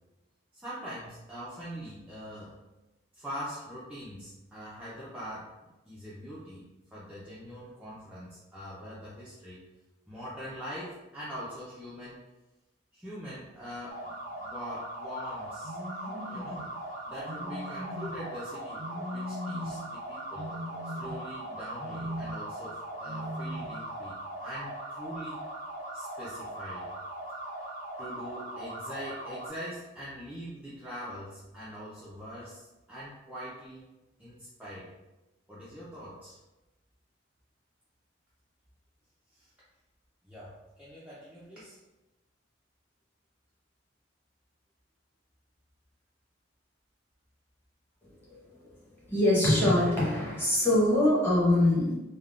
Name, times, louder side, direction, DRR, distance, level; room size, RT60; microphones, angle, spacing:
voice 1, 0.5-2.5 3.2-5.5 5.9-9.6 10.1-12.3 12.9-15.8 16.3-16.7 17.0-20.5 20.8-25.4 25.9-26.9 28.0-33.9 34.2-34.9 35.5-36.4 39.4-39.5 40.2-41.8, equal, 5° right, -10 dB, 0.4 m, -43 dB
sound 1, 13.9-29.5, right 1 dB, 40° left, 0.9 m, -40 dB
sound 2, 15.6-16.7 17.2-18.3 18.8-19.9 20.3-21.4 21.8-22.5 23.0-23.8, equal, 80° right, 0.6 m, -39 dB
voice 2, 49.1-52.0, left 1 dB, 10° left, -7 dB, 0.8 m, -23 dB
3.5 x 2.1 x 2.4 m, 1.1 s
head